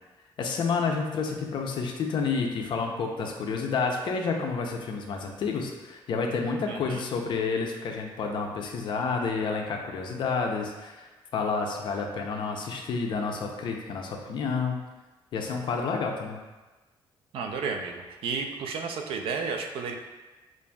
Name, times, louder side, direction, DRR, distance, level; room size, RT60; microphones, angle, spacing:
voice 1, 0.4-14.8 15.3-16.4, left 4 dB, 55° left, 1 dB, 0.6 m, -30 dB
voice 2, 6.7-7.0 17.3-19.9, right 5 dB, 80° right, 3 dB, 0.5 m, -32 dB
6.9 x 2.6 x 2.3 m, 1.2 s
cardioid pair, 145°, 9 cm